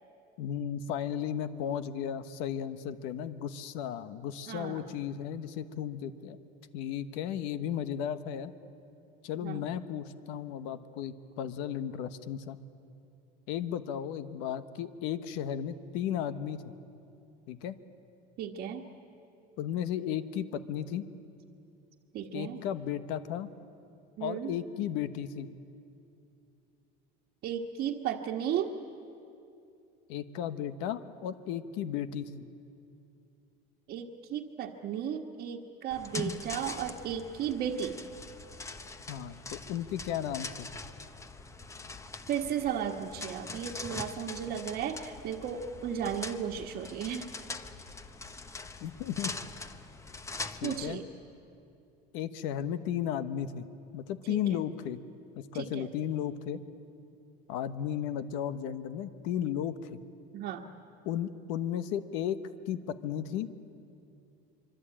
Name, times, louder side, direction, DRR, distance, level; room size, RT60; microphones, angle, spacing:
voice 1, 0.4-6.4 6.7-8.5 9.2-12.6 13.5-16.7 17.5-17.8 19.6-21.0 22.3-23.5 24.2-25.5 30.1-32.4 39.1-40.7 48.8-49.3 50.6-51.0 52.1-53.7 53.9-55.0 55.4-56.6 57.5-60.0 61.0-62.4 62.7-63.5, left 9 dB, 70° left, 11 dB, 1.2 m, -34 dB
voice 2, 4.5-4.8 9.4-9.6 18.4-18.8 22.1-22.6 24.2-24.5 27.4-28.7 33.9-37.9 42.3-47.3 50.6-51.0 54.3-54.6 55.5-55.8 60.3-60.7, right 9 dB, 50° right, -2 dB, 1.5 m, -34 dB
sound 1, 35.9-50.9, left 3 dB, 15° left, 1.1 m, -42 dB
25.5 x 24.0 x 8.9 m, 2.6 s
cardioid pair, 135°, 20 cm